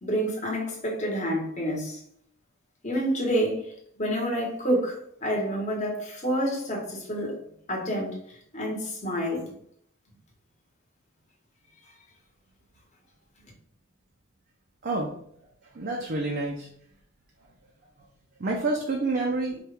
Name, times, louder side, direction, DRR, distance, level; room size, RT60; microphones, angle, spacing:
voice 1, 0.0-2.0 2.8-7.3 7.7-9.4, equal, 35° left, -3 dB, 1.3 m, -28 dB
voice 2, 14.8-15.1 15.7-16.7 18.4-19.6, right 2 dB, 50° right, -1 dB, 0.6 m, -28 dB
4.5 x 2.4 x 3.3 m, 0.67 s
head